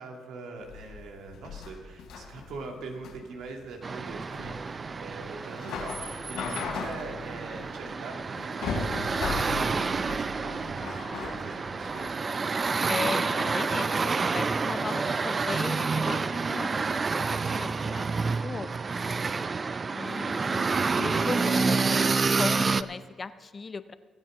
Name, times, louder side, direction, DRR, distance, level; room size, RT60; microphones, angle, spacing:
voice 1, 0.0-12.4 15.3-15.4 18.2-18.7 20.0-20.4, right 3 dB, 80° right, 2 dB, 2.1 m, -43 dB
sound 1, 0.6-12.2, left 5 dB, 90° left, 3.4 m, -38 dB
sound 2, 3.8-22.8, right 4 dB, 35° right, 0.4 m, -29 dB
voice 2, 12.9-18.8 19.9-22.1 22.4-23.9, left 4 dB, 35° left, 13 dB, 0.6 m, -37 dB
23.5 x 8.9 x 3.7 m, 1.5 s
cardioid pair, 90°, 0 cm